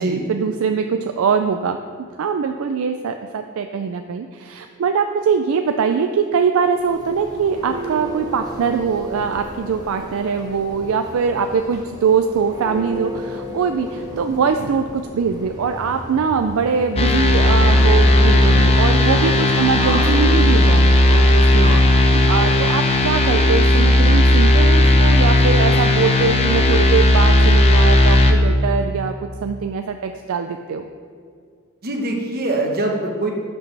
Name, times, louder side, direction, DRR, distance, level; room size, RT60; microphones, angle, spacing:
voice 1, 0.0-1.8 2.2-29.2 29.4-30.8, right 6 dB, 65° right, 6 dB, 0.4 m, -22 dB
Church bell, 6.7-20.9, equal, 20° right, 1.1 m, -34 dB
sound 1, 17.0-28.3, left 1 dB, 25° left, 0.6 m, -14 dB
voice 2, 21.6-21.9 31.8-33.3, right 2 dB, 45° right, 1 dB, 1.2 m, -24 dB
11.0 x 6.1 x 3.3 m, 2.1 s
head